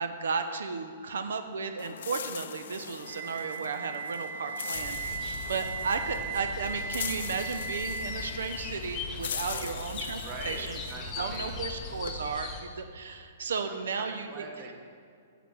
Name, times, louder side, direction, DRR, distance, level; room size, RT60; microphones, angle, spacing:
voice 1, 0.0-10.8 11.2-14.4, right 5 dB, 90° right, 8 dB, 0.7 m, -34 dB
sound 1, 1.8-12.1, left 8 dB, 65° left, 0.5 m, -41 dB
Wind instrument woodwind instrument, 3.0-9.0, right 5 dB, 50° right, 1.1 m, -38 dB
sound 2, 4.7-12.6, left 4 dB, 15° left, 1.1 m, -40 dB
voice 2, 9.3-9.8 10.2-11.6 13.7-14.7, right 3 dB, 25° right, 2 dB, 1.2 m, -43 dB
9.1 x 7.0 x 6.2 m, 2.3 s
hypercardioid pair, 175°, 0 cm